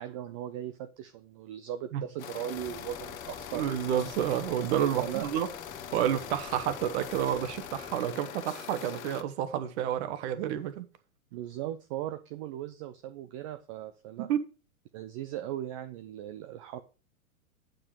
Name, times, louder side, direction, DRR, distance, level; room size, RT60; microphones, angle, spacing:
voice 1, 0.0-3.7 4.9-5.3 11.3-14.3 14.9-16.8, right 12 dB, 25° right, 0.3 m, -38 dB
sound 1, 2.2-9.2, left 9 dB, 70° left, 1.0 m, -42 dB
sound 2, 2.5-8.0, left 1 dB, ahead, 1.0 m, -53 dB
voice 2, 3.5-5.5 5.9-10.9 14.2-14.5, right 10 dB, 50° right, 1.3 m, -30 dB
8.6 x 5.3 x 5.5 m
hypercardioid pair, 110°, 42 cm